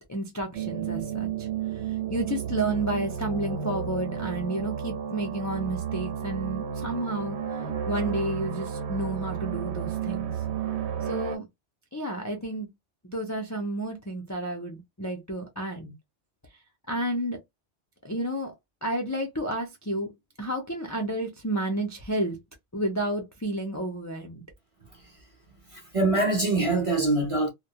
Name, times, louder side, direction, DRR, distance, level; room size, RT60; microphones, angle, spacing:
voice 1, 0.0-1.5 1.7-7.4 7.9-10.3 11.0-11.5 11.9-12.7 13.0-15.9 16.9-17.4 18.0-18.5 18.8-22.4 22.7-24.4, right 1 dB, 25° left, 0.3 m, -31 dB
sound 1, 0.5-11.4, right 8 dB, 75° right, 0.9 m, -32 dB
voice 2, 24.9-25.2 25.5-27.5, right 2 dB, 35° right, 0.6 m, -25 dB
2.2 x 2.1 x 2.7 m
omnidirectional pair, 1.2 m